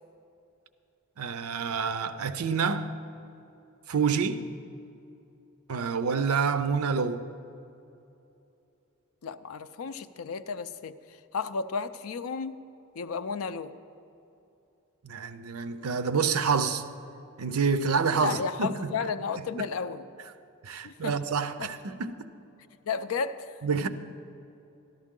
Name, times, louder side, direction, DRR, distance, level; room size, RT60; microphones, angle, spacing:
voice 1, 1.2-3.0 3.9-4.4 5.7-7.3 15.0-16.8 17.4-18.9 19.6-19.7 20.6-22.2 23.6-23.9, right 5 dB, 80° right, 0.6 m, -28 dB
voice 2, 9.2-12.6 13.0-13.7 18.2-20.1 20.8-21.2 21.6-21.7 22.8-23.5, left 5 dB, 70° left, 0.4 m, -33 dB
13.0 x 12.0 x 3.7 m
head